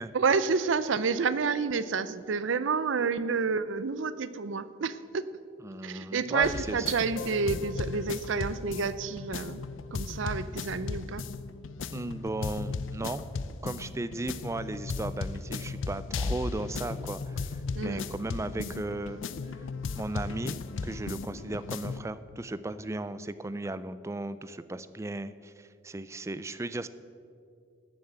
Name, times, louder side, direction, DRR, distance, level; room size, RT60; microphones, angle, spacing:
voice 1, 0.1-5.3 5.8-9.6 9.9-11.3 17.7-18.1, right 5 dB, 75° right, 15 dB, 0.6 m, -29 dB
voice 2, 5.6-6.8 11.9-13.2 13.6-19.2 19.9-26.9, right 2 dB, 15° right, 14 dB, 0.3 m, -36 dB
sound 1, 6.4-22.0, left 4 dB, 80° left, 0.5 m, -36 dB
13.0 x 7.5 x 8.0 m, 2.4 s
head